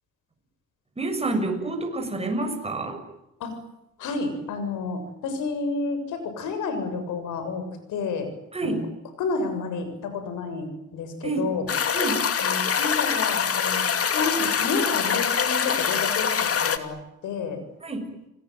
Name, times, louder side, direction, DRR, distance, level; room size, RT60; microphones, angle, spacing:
voice 1, 1.0-3.0 8.5-8.8 11.2-11.5 11.9-12.3 17.8-18.0, right 2 dB, 20° right, 4 dB, 7.2 m, -28 dB
voice 2, 4.0-8.3 8.6-8.8 9.2-11.7 12.4-17.0 17.2-17.6, left 4 dB, 85° left, 9 dB, 7.4 m, -30 dB
sound 1, 11.7-16.8, left 7 dB, 50° left, 2.6 m, -24 dB
30.0 x 20.5 x 9.4 m, 0.89 s
cardioid pair, 90°, 30 cm